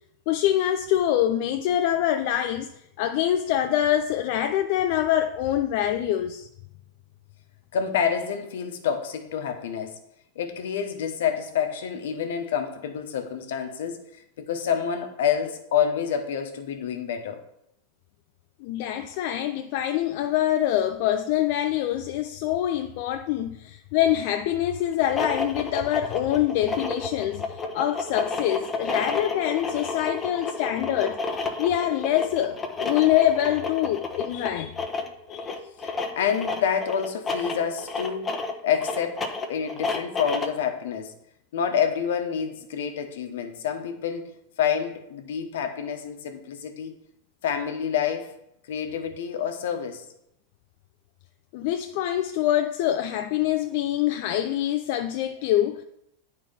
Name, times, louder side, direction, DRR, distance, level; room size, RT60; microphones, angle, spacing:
voice 1, 0.3-2.7 3.0-6.5 18.6-34.8 35.3-35.5 51.5-55.8, left 12 dB, 60° left, 0.5 m, -25 dB
voice 2, 7.7-10.0 10.3-14.0 14.4-17.4 35.5-38.3 38.6-41.1 41.5-44.3 44.6-46.9 47.4-48.3 48.7-50.0, left 8 dB, 75° left, 1.2 m, -28 dB
sound 1, 24.9-40.6, left 3 dB, 20° left, 1.1 m, -31 dB
8.9 x 4.3 x 5.8 m
hypercardioid pair, 120°, 0 cm